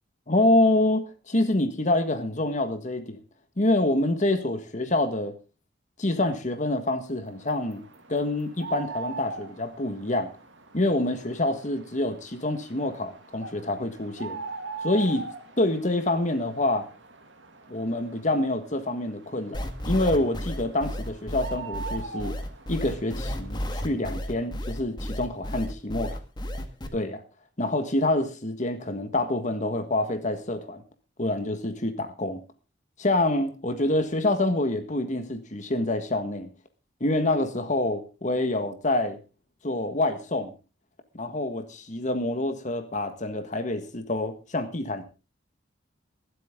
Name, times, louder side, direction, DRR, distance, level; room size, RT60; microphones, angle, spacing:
voice 1, 0.3-3.2 3.6-5.3 6.0-7.8 8.1-10.3 10.7-14.4 14.8-15.2 15.6-16.9 17.7-22.3 22.7-26.2 26.9-27.2 27.6-30.8 31.2-32.4 33.0-36.5 37.0-39.2 39.6-40.5 41.1-45.0, left 1 dB, 40° left, 1.6 m, -26 dB
sound 1, 7.3-23.6, right 3 dB, 85° right, 2.4 m, -42 dB
sound 2, 19.5-26.9, equal, 25° left, 1.7 m, -32 dB
24.5 x 8.3 x 3.7 m
head